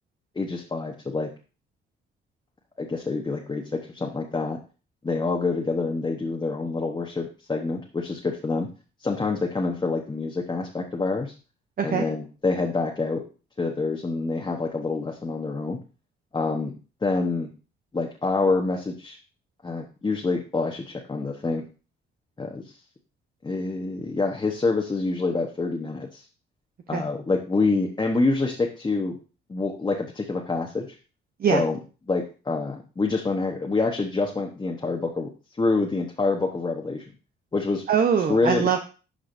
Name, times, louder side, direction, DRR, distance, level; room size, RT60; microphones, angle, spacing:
voice 1, 0.3-1.3 2.8-4.6 5.0-8.7 9.0-11.3 11.8-13.2 13.6-15.8 16.3-17.5 17.9-19.2 19.6-21.6 22.4-22.8 23.4-26.2 26.9-29.1 29.5-31.0 31.5-31.8 32.1-35.3 35.6-37.0 37.5-37.8 38.3-38.7, left 3 dB, 20° left, 0 dB, 1.1 m, -26 dB
voice 2, 37.9-38.8, right 7 dB, 50° right, 5 dB, 0.8 m, -22 dB
11.5 x 4.9 x 2.6 m, 0.35 s
cardioid pair, 90°, 20 cm